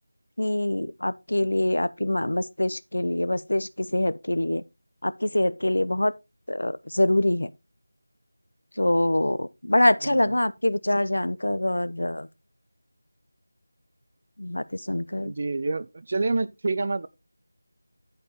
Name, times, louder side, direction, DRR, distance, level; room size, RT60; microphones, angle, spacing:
voice 1, 0.4-4.6 5.0-6.1 6.5-7.5 8.8-12.3 14.4-15.3, left 1 dB, 90° left, 0.9 m, -24 dB
voice 2, 15.2-17.1, right 3 dB, 25° right, 0.5 m, -27 dB
11.0 x 5.3 x 4.1 m
figure-of-eight pair, 180°, 0 cm